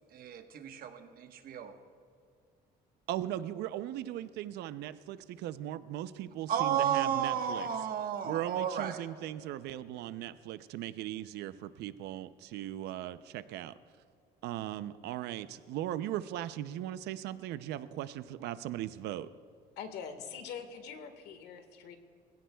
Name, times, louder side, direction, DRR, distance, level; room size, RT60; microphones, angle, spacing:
voice 1, 0.1-1.8 6.5-9.0, right 9 dB, 60° right, 6 dB, 1.3 m, -32 dB
voice 2, 3.1-7.7 8.2-13.7 14.4-19.3, right 12 dB, 80° right, 13 dB, 0.6 m, -38 dB
voice 3, 19.8-22.0, left 7 dB, 80° left, 7 dB, 1.6 m, -43 dB
25.5 x 16.5 x 2.3 m, 2.3 s
cardioid pair, 110°, 17 cm